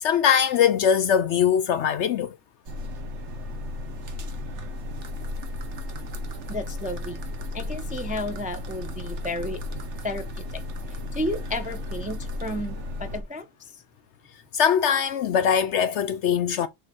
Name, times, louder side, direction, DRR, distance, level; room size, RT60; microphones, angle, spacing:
voice 1, 0.0-2.4 14.5-16.7, left 8 dB, 65° left, 0.8 m, -21 dB
sound 1, 2.7-13.2, left 2 dB, 55° right, 1.3 m, -34 dB
voice 2, 6.5-7.2 7.5-9.6 10.0-10.6 11.1-13.8, left 1 dB, 10° right, 0.4 m, -32 dB
6.4 x 3.6 x 4.2 m
omnidirectional pair, 1.5 m